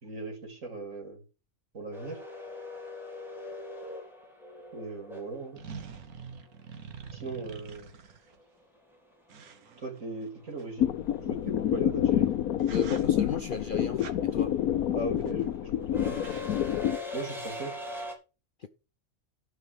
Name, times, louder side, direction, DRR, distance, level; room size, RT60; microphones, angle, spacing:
voice 1, 0.0-1.2 1.7-2.2 4.7-5.6 7.1-7.9 9.8-12.3 14.9-16.3 17.1-17.7, right 3 dB, 60° right, 3.7 m, -38 dB
sound 1, 1.9-6.0 8.4-8.5 9.8-10.1 10.4-18.1, left 2 dB, ahead, 3.8 m, -41 dB
sound 2, 4.6-4.7 5.6-8.4 9.3-10.6 12.0-12.3 12.6-13.3 14.0-14.2 15.2-15.6 15.8-15.9 16.1-16.5, right 6 dB, 85° right, 1.8 m, -46 dB
sound 3, 10.8-17.0, left 11 dB, 85° left, 1.3 m, -28 dB
voice 2, 12.7-14.6 18.6-18.7, left 5 dB, 45° left, 0.7 m, -35 dB
12.0 x 5.5 x 7.8 m
omnidirectional pair, 1.5 m